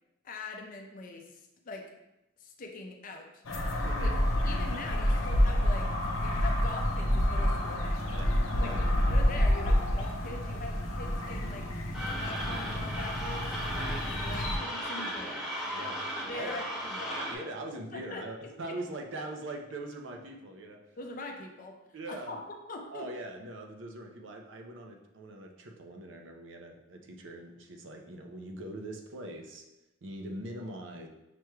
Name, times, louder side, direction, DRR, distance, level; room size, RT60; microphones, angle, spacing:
voice 1, 0.2-1.8 2.4-3.4 4.0-4.1 4.4-5.9 6.2-8.1 8.6-11.7 12.2-15.5 16.2-16.6 16.9-17.2 17.9-18.2 21.0-21.7 22.1-23.1, left 2 dB, 45° left, 2 dB, 0.5 m, -43 dB
sound 1, 3.4-14.6, equal, 90° left, 0.6 m, -28 dB
voice 2, 3.8-4.2 8.1-8.8 15.7-16.1 16.3-16.7 17.1-20.8 21.9-22.4 22.9-29.6 30.0-31.1, right 1 dB, 65° right, 3 dB, 0.6 m, -42 dB
sound 2, 11.9-17.3, equal, ahead, 0.8 m, -36 dB
5.9 x 3.1 x 2.3 m, 0.92 s
head